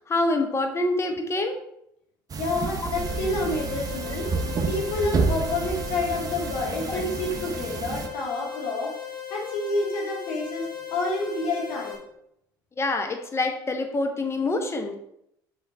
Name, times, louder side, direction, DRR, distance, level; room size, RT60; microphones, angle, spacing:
voice 1, 0.1-1.6 2.8-2.9 5.0-5.1 6.9-7.0 7.9-8.0 12.8-14.9, left 2 dB, 25° left, 5 dB, 1.2 m, -26 dB
sound 1, 2.3-8.1, right 4 dB, 35° right, 0.8 m, -30 dB
voice 2, 2.4-4.3 4.6-8.9 9.3-12.1, left 2 dB, 60° left, -1 dB, 1.9 m, -29 dB
sound 2, 3.0-12.0, left 8 dB, 45° left, 1.7 m, -37 dB
6.2 x 5.2 x 4.2 m, 0.76 s
hypercardioid pair, 60°, 11 cm